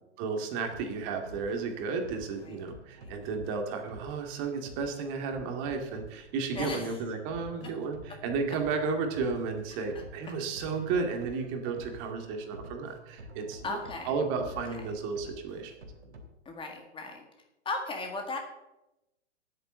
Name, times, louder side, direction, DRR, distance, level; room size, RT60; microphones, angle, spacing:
voice 1, 0.2-13.8 14.1-15.7, right 4 dB, 35° right, 4 dB, 2.1 m, -33 dB
sound 1, 0.6-16.2, equal, 70° right, 2.8 m, -49 dB
voice 2, 6.6-7.0 13.6-14.1 16.5-17.2 17.7-18.4, left 3 dB, 15° left, 4 dB, 1.7 m, -36 dB
10.0 x 8.8 x 7.5 m, 0.94 s
figure-of-eight pair, 115°, 35 cm